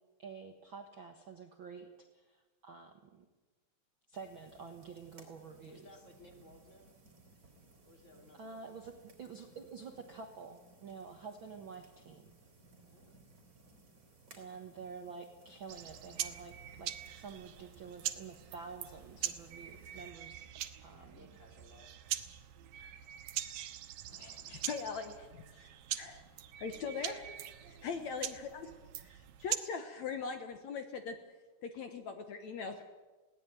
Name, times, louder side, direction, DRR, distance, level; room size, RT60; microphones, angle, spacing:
voice 1, 0.2-3.2 4.1-5.8 8.3-8.9 9.2-12.3 14.3-20.4 20.8-21.3, right 5 dB, 50° right, 4 dB, 1.5 m, -49 dB
sound 1, 4.1-20.1, right 2 dB, 30° right, 4.2 m, -62 dB
voice 2, 5.6-6.9 7.8-8.7 12.9-13.3 20.9-21.9 26.7-27.4 27.8-27.9, left 1 dB, 20° left, 3 dB, 2.8 m, -58 dB
sound 2, 15.7-29.6, right 12 dB, 80° right, 2.7 m, -43 dB
voice 3, 24.1-25.7 25.9-26.2 26.6-27.2 27.8-28.7 29.0-31.2 31.6-32.8, left 5 dB, 65° left, 7 dB, 2.2 m, -41 dB
21.0 x 17.5 x 9.1 m, 1.2 s
omnidirectional pair, 4.0 m